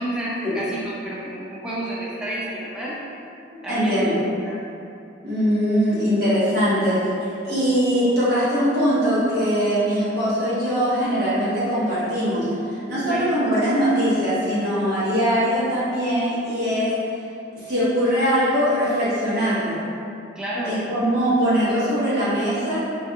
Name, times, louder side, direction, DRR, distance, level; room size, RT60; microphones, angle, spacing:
voice 1, 0.0-3.0 3.6-4.1 4.5-4.6 13.1-13.3 20.4-20.8, right 1 dB, 5° right, -7 dB, 0.3 m, -30 dB
voice 2, 3.7-4.2 5.2-7.1 7.4-16.9 17.5-19.8 20.6-22.8, equal, 50° right, -12 dB, 1.0 m, -21 dB
2.5 x 2.3 x 2.6 m, 2.6 s
head